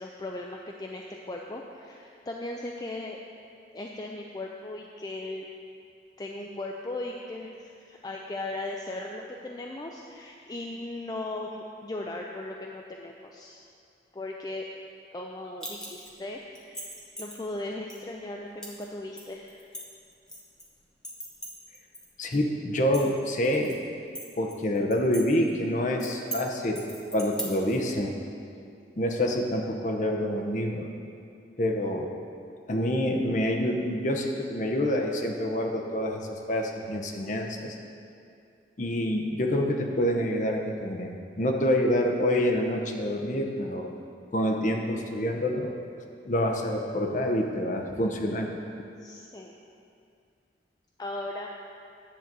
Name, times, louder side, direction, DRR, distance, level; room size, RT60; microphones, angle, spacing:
voice 1, 0.0-3.2 3.7-5.5 6.2-13.6 14.1-14.6 15.1-19.6 49.0-49.5 51.0-51.5, left 2 dB, 20° left, 0 dB, 0.4 m, -37 dB
sound 1, 15.6-16.2 16.6-17.4 17.9-18.0 18.6-18.8 19.2-20.6 21.0-22.1 22.3-22.4 22.8-23.7 24.2-25.2 25.5-25.6 26.0-26.4 26.8-27.8, right 1 dB, 5° left, 1.0 m, -39 dB
voice 2, 22.2-23.8 24.4-26.9 27.1-28.1 29.0-30.9 31.6-32.1 32.7-37.8 38.8-43.9 44.3-45.7 46.3-48.5, left 1 dB, 40° left, 2 dB, 0.8 m, -27 dB
10.0 x 4.0 x 7.4 m, 2.5 s
head